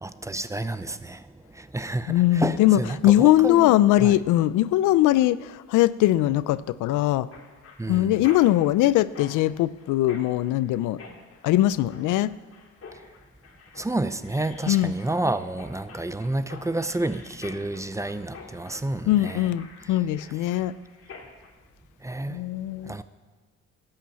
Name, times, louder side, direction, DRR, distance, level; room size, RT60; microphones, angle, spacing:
voice 1, 0.0-3.7 4.0-4.2 7.8-8.2 13.8-19.5 22.0-22.5 22.8-23.0, right 2 dB, 10° right, 13 dB, 0.6 m, -30 dB
voice 2, 2.1-7.3 7.9-11.0 11.4-12.3 14.7-14.9 19.1-20.7 22.3-22.9, left 14 dB, 90° left, 18 dB, 0.5 m, -21 dB
Mechanisms, 7.3-21.5, left 4 dB, 50° left, 2.2 m, -47 dB
12.5 x 8.9 x 7.5 m, 1.4 s
cardioid pair, 90°, 30 cm